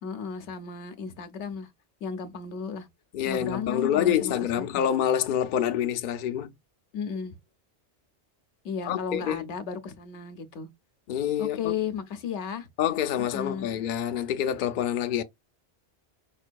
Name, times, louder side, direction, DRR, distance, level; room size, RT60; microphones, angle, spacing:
voice 1, 0.0-1.7 2.0-2.9 3.2-4.9 6.9-7.3 8.6-10.7 11.4-12.7 13.2-13.7, left 6 dB, 80° left, 1.0 m, -34 dB
voice 2, 3.1-6.5 8.9-9.4 11.1-11.7 12.8-15.2, left 10 dB, 60° left, 0.6 m, -27 dB
5.1 x 2.6 x 2.2 m
omnidirectional pair, 1.2 m